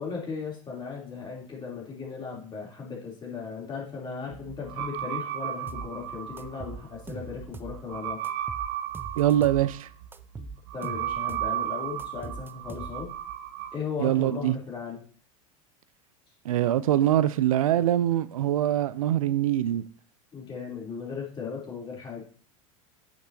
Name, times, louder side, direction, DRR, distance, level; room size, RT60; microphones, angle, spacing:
voice 1, 0.0-8.2 10.4-13.1 13.7-15.0 20.3-22.3, left 5 dB, 25° left, 3.2 m, -37 dB
sound 1, 4.3-13.8, right 11 dB, 65° right, 0.8 m, -35 dB
sound 2, 5.7-5.9 6.4-7.8 8.2-9.7 10.1-11.5 12.0-13.2, right 4 dB, 10° right, 0.4 m, -41 dB
voice 2, 9.2-9.9 14.0-14.5 16.4-19.8, right 12 dB, 90° right, 0.4 m, -23 dB
8.9 x 6.0 x 2.8 m
hypercardioid pair, 95°, 17 cm